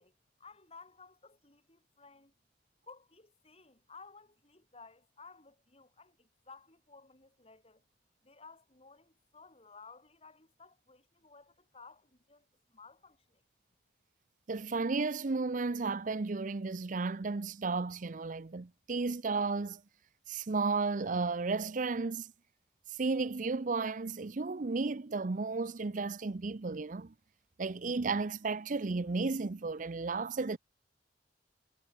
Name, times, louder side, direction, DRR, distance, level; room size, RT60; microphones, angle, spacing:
voice 1, 0.0-2.3 2.9-7.8 8.2-13.4, left 4 dB, 35° left, 4.1 m, -56 dB
voice 2, 14.5-19.8 20.3-22.3 22.9-27.1 27.6-30.6, right 4 dB, 45° right, 0.6 m, -33 dB
head